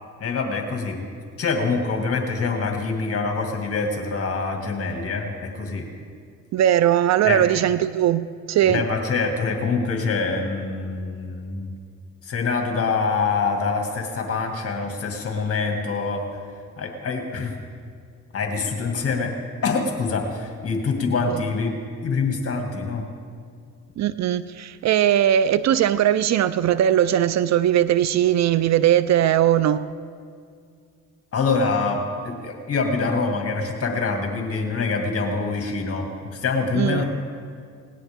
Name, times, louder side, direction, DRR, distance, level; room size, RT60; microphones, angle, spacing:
voice 1, 0.2-1.0 1.4-5.9 7.2-7.4 8.6-11.7 12.2-16.2 16.8-17.5 18.3-19.3 19.6-23.1 31.3-37.0, left 4 dB, 50° left, 2.2 m, -25 dB
voice 2, 6.5-8.8 21.3-21.4 24.0-29.9 36.8-37.0, right 11 dB, 65° right, 0.5 m, -19 dB
20.5 x 18.5 x 3.6 m
cardioid pair, 90°, 30 cm